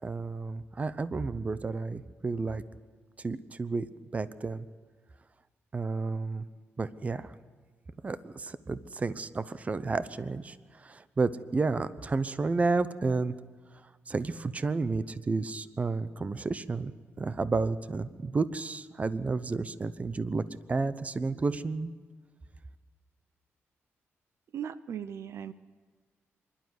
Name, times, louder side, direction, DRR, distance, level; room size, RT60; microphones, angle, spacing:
voice 1, 0.0-2.6 3.2-3.9 4.1-4.7 5.7-6.4 6.8-7.3 8.0-13.3 14.1-16.9 17.2-20.4 20.7-21.9, right 3 dB, 30° right, 15 dB, 0.8 m, -31 dB
voice 2, 24.5-25.5, right 9 dB, 70° right, 15 dB, 0.6 m, -38 dB
25.0 x 12.0 x 9.6 m, 1.4 s
cardioid pair, 100°, 5 cm